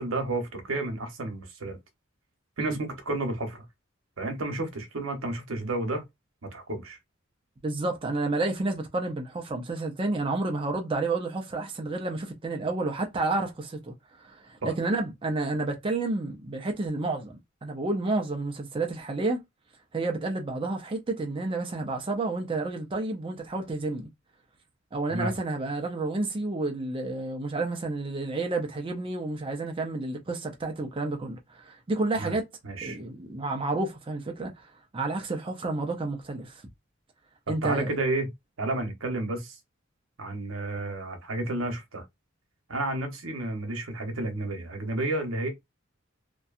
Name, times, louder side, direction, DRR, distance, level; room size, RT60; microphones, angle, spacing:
voice 1, 0.0-1.8 2.6-3.6 4.2-6.0 6.5-7.0 14.6-14.7 25.1-25.4 32.2-32.4 32.6-33.0 37.5-38.3 38.6-39.6 40.2-42.0 42.7-45.5, right 2 dB, 85° right, 0.9 m, -31 dB
voice 2, 7.6-13.9 14.2-17.4 17.6-19.4 19.9-24.1 24.9-32.5 32.8-34.5 34.9-36.6 37.5-37.9, right 2 dB, 25° right, 0.4 m, -30 dB
2.6 x 2.2 x 2.4 m
head